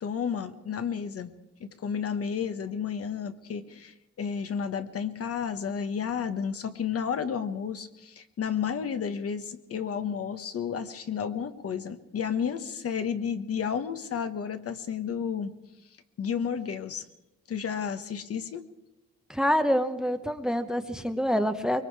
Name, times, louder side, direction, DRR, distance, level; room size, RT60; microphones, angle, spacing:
voice 1, 0.0-1.3 1.6-15.5 16.2-17.0 17.5-18.7, left 7 dB, 50° left, 10 dB, 1.2 m, -32 dB
voice 2, 19.3-21.8, equal, ahead, 9 dB, 0.8 m, -26 dB
24.0 x 22.5 x 4.7 m, 0.96 s
wide cardioid pair, 170°, 30 cm